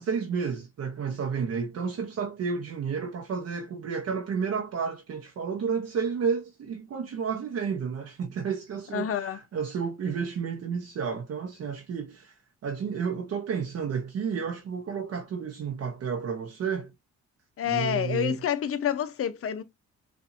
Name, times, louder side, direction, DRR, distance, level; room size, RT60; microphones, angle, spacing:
voice 1, 0.0-12.3 12.6-16.9 17.7-18.4, right 6 dB, 55° right, 0.9 m, -31 dB
voice 2, 8.9-9.4 17.6-19.6, left 9 dB, 50° left, 0.8 m, -28 dB
5.9 x 2.6 x 2.6 m
cardioid pair, 90°, 30 cm